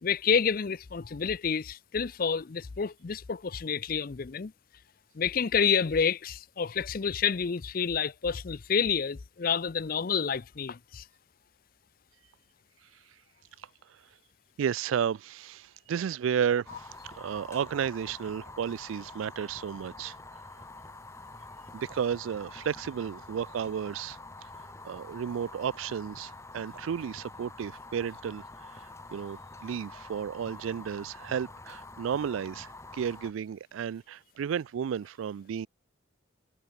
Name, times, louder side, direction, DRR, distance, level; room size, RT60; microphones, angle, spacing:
voice 1, 0.0-4.5 5.2-11.0, left 6 dB, 45° left, 0.5 m, -29 dB
voice 2, 14.6-20.2 21.7-24.2 24.8-28.4 28.7-28.8 29.1-35.7, right 8 dB, 85° right, 0.3 m, -33 dB
Fire, 16.7-33.3, left 2 dB, 15° left, 1.8 m, -47 dB
head